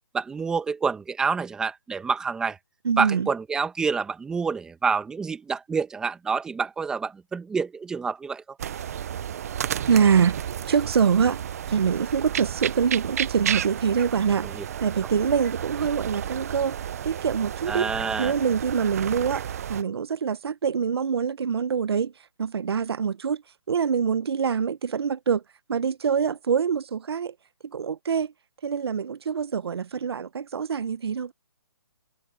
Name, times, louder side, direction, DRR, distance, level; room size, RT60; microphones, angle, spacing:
voice 1, 0.1-2.6 3.0-8.4 14.4-14.6 17.7-18.3, right 5 dB, 5° right, 1.1 m, -27 dB
voice 2, 2.8-3.3 9.9-11.4 11.7-16.8 17.0-17.9 18.2-22.1 22.4-23.4 23.7-25.4 25.7-27.3 27.7-28.3 28.6-31.3, right 6 dB, 70° right, 0.9 m, -25 dB
sound 1, 8.6-19.8, right 9 dB, 35° right, 0.5 m, -32 dB
hypercardioid pair, 165°, 14 cm